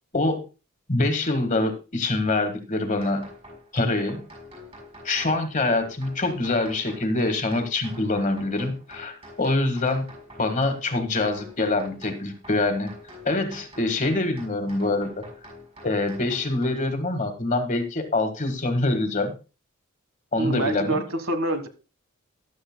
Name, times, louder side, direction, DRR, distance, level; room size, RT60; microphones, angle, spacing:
voice 1, 0.9-3.2 3.7-4.3 5.0-10.1 10.4-12.9 13.2-15.1 15.8-19.3 20.3-21.0, left 2 dB, 35° left, 7 dB, 1.6 m, -25 dB
sound 1, 3.0-16.7, left 1 dB, 25° right, 5.7 m, -46 dB
voice 2, 20.4-21.7, right 2 dB, 65° right, 10 dB, 1.4 m, -26 dB
15.0 x 11.5 x 2.2 m, 0.31 s
head